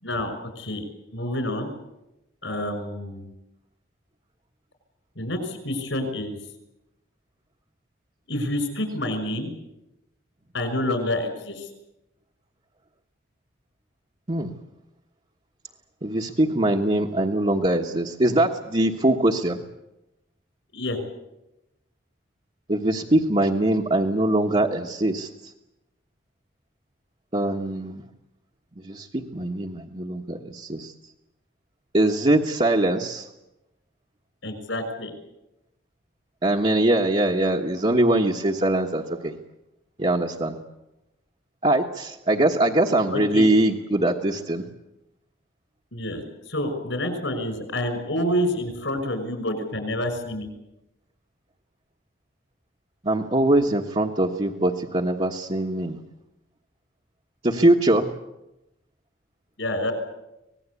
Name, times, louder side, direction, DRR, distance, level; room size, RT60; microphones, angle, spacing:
voice 1, 0.0-0.8 1.1-1.7 2.4-3.3 5.2-6.4 8.3-9.5 10.5-11.7 20.7-21.0 34.4-35.1 43.1-43.5 45.9-50.5 59.6-59.9, left 1 dB, 70° left, 8 dB, 5.8 m, -28 dB
voice 2, 16.0-19.6 22.7-25.3 27.3-28.0 28.8-30.9 31.9-33.3 36.4-39.4 40.0-40.6 41.6-44.6 53.0-56.0 57.4-58.1, right 1 dB, 30° right, -2 dB, 1.3 m, -22 dB
25.0 x 19.5 x 8.4 m, 0.92 s
head